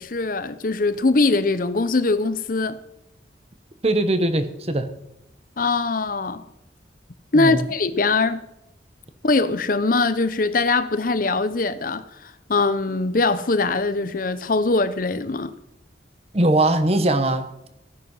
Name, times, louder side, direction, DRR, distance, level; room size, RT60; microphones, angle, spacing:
voice 1, 0.0-2.8 5.6-6.4 7.3-8.4 9.2-12.0 12.5-15.5, left 3 dB, 50° left, 0.7 m, -22 dB
voice 2, 3.8-4.9 7.3-7.6 16.3-17.5, right 1 dB, 35° right, 1.1 m, -20 dB
15.5 x 10.0 x 5.6 m
head